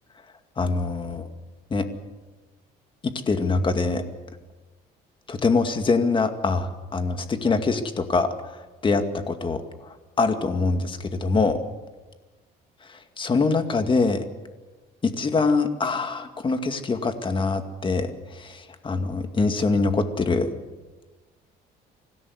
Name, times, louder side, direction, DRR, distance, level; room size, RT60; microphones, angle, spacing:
voice 1, 0.6-1.3 1.7-1.9 3.0-4.0 5.3-11.6 13.2-14.3 15.0-20.5, left 3 dB, 30° left, 7 dB, 2.2 m, -24 dB
25.0 x 16.5 x 8.1 m, 1.2 s
cardioid pair, 110°, 17 cm